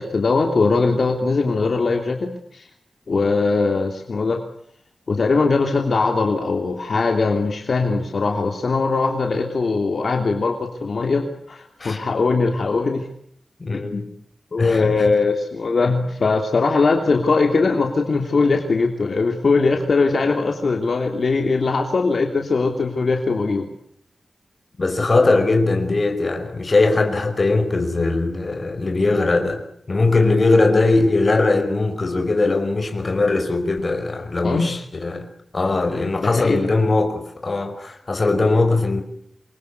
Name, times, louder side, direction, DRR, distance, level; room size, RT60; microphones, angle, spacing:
voice 1, 0.0-2.7 3.1-4.4 5.1-13.0 13.9-14.0 14.5-23.6 34.4-34.7 36.2-36.6, left 4 dB, 60° left, 3.2 m, -20 dB
voice 2, 13.6-14.1 14.6-15.0 24.8-29.6 29.9-35.3 35.5-39.0, left 3 dB, 40° left, 5.0 m, -20 dB
28.0 x 23.0 x 8.4 m
wide cardioid pair, 125°, 0 cm